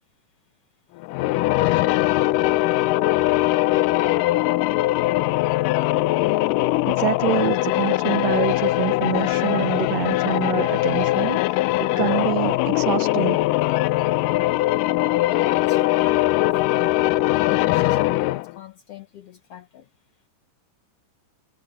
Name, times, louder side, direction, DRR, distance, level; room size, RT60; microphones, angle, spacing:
sound 1, 1.0-18.5, left 18 dB, 90° left, 2.2 m, -21 dB
voice 1, 6.8-13.4, right 13 dB, 70° right, 1.8 m, -26 dB
voice 2, 15.3-19.9, left 10 dB, 65° left, 1.6 m, -38 dB
omnidirectional pair, 3.7 m